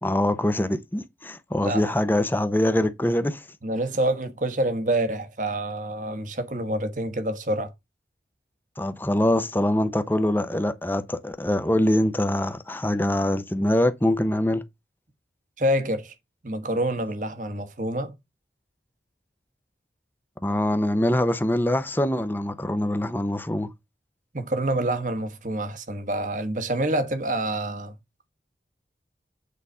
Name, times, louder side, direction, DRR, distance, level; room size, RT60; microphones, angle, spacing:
voice 1, 0.0-3.5 8.8-14.6 20.4-23.7, left 1 dB, 10° left, 0.7 m, -24 dB
voice 2, 1.6-1.9 3.6-7.7 15.6-16.1 16.4-18.1 24.3-27.9, right 1 dB, 45° right, 1.2 m, -27 dB
8.4 x 4.1 x 5.5 m
head